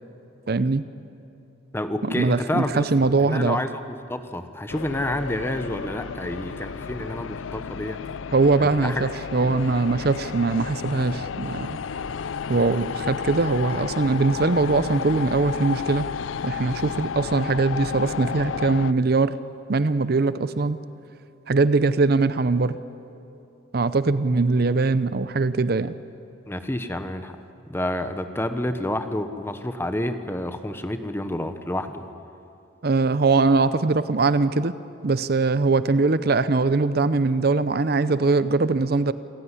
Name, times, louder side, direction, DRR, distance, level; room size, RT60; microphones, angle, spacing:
voice 1, 0.5-0.8 2.0-3.6 8.3-11.8 12.5-16.1 16.4-19.4 19.7-20.8 21.5-22.8 23.7-25.9 32.8-34.7 35.0-39.1, right 3 dB, 50° right, 14 dB, 0.6 m, -21 dB
voice 2, 1.7-8.0 8.6-9.1 9.4-9.6 26.5-27.3 27.7-32.0, left 1 dB, 10° left, 9 dB, 1.0 m, -29 dB
sound 1, 4.7-18.9, left 6 dB, 80° left, 0.5 m, -32 dB
27.5 x 16.0 x 9.9 m, 2.7 s
head